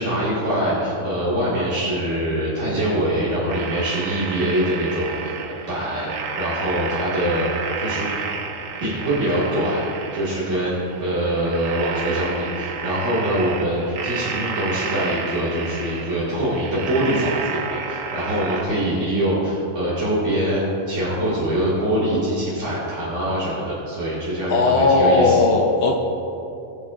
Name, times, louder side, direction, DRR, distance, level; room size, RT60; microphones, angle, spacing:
voice 1, 0.0-5.4 5.7-6.1 6.3-8.1 8.8-9.8 10.1-25.4, right 1 dB, 65° right, -10 dB, 2.3 m, -23 dB
sound 1, 3.5-18.6, right 5 dB, 85° right, 1.2 m, -31 dB
voice 2, 24.5-26.0, left 3 dB, 55° left, 1 dB, 0.9 m, -17 dB
20.0 x 8.1 x 2.4 m, 2.9 s
omnidirectional pair, 1.3 m